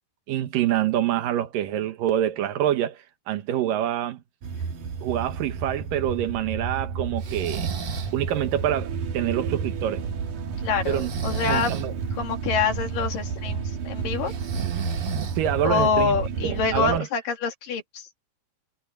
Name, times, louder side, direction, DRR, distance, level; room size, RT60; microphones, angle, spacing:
voice 1, 0.3-4.2 5.0-7.7 8.1-10.1 10.9-11.1 11.5-11.9 15.4-16.2 16.4-17.1, right 11 dB, 85° right, 2.9 m, -26 dB
sound 1, 4.4-17.0, right 5 dB, 65° right, 3.5 m, -31 dB
Breathing, 7.2-8.2 10.8-11.9 14.3-15.7, right 5 dB, 45° right, 1.7 m, -33 dB
voice 2, 10.6-11.8 12.1-14.3 15.6-18.1, left 5 dB, 80° left, 4.3 m, -26 dB
omnidirectional pair, 3.8 m